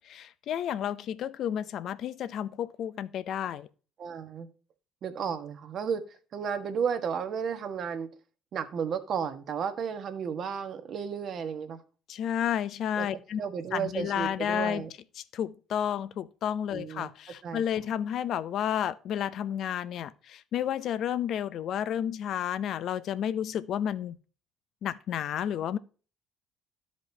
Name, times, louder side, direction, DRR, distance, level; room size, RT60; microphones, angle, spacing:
voice 1, 0.1-3.7 12.1-13.4 13.7-14.9 15.2-24.2 24.8-25.8, left 9 dB, 65° left, 0.6 m, -31 dB
voice 2, 4.0-4.5 5.0-6.0 6.3-8.1 8.5-11.8 13.0-13.1 13.4-14.9 16.7-17.1 17.4-17.6, right 7 dB, 60° right, 1.4 m, -33 dB
13.0 x 5.2 x 2.8 m
hypercardioid pair, 60°, 0 cm